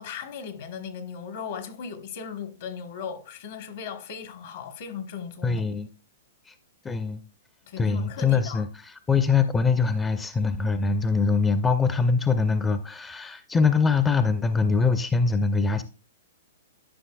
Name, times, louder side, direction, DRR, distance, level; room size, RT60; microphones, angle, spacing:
voice 1, 0.0-5.6 7.7-8.6, left 6 dB, 60° left, 1.1 m, -37 dB
voice 2, 5.4-5.9 6.5-6.6 6.8-7.2 7.8-15.8, left 4 dB, 15° left, 0.4 m, -23 dB
11.0 x 5.6 x 2.3 m
hypercardioid pair, 120°, 0 cm